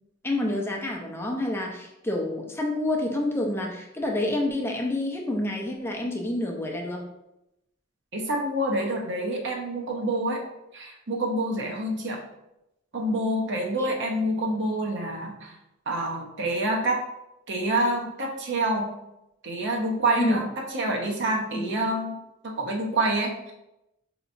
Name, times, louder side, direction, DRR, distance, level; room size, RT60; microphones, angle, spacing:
voice 1, 0.2-7.1 13.8-13.9 20.2-20.4 21.5-21.7, left 1 dB, 10° left, 0 dB, 0.5 m, -28 dB
voice 2, 8.1-10.4 10.7-12.2 12.9-15.5 15.9-17.0 17.5-18.9 19.4-20.4 20.7-22.2 22.4-23.5, right 1 dB, 60° right, 0 dB, 0.7 m, -27 dB
5.1 x 2.9 x 2.6 m, 0.89 s
head